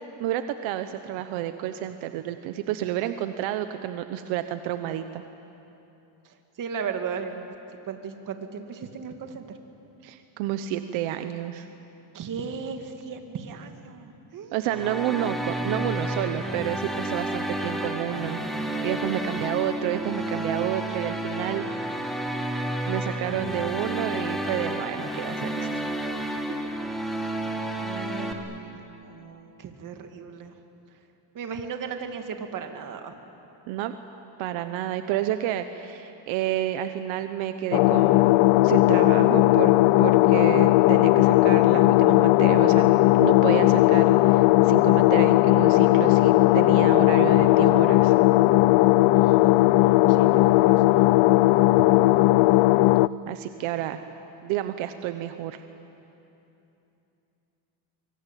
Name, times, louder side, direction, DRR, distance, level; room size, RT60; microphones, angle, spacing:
voice 1, 0.2-5.2 10.0-11.7 14.5-21.6 22.9-25.8 33.7-33.9 34.4-38.2 38.6-39.7 40.0-48.2 53.3-54.0 54.4-55.6, right 12 dB, 80° right, 9 dB, 1.2 m, -30 dB
voice 2, 6.2-7.4 7.9-9.4 12.1-14.7 15.3-15.4 17.5-17.8 27.2-30.5 31.3-33.1 49.1-51.1, right 6 dB, 45° right, 5 dB, 2.4 m, -37 dB
sound 1, 14.6-28.3, right 1 dB, ahead, 2.3 m, -31 dB
sound 2, 37.7-53.1, left 18 dB, 80° left, 0.6 m, -18 dB
24.5 x 24.0 x 9.2 m, 2.9 s
cardioid pair, 135°, 46 cm